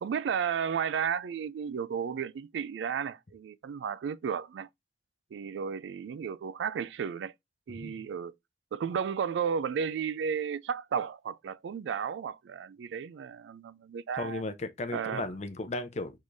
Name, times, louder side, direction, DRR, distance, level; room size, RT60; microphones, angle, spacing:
voice 1, 0.0-4.7 5.3-7.3 7.7-8.3 8.7-14.4 14.9-15.3, right 7 dB, 85° right, 0.3 m, -33 dB
voice 2, 7.7-8.1 14.1-16.2, left 2 dB, 40° left, 0.6 m, -36 dB
4.7 x 3.7 x 2.6 m
head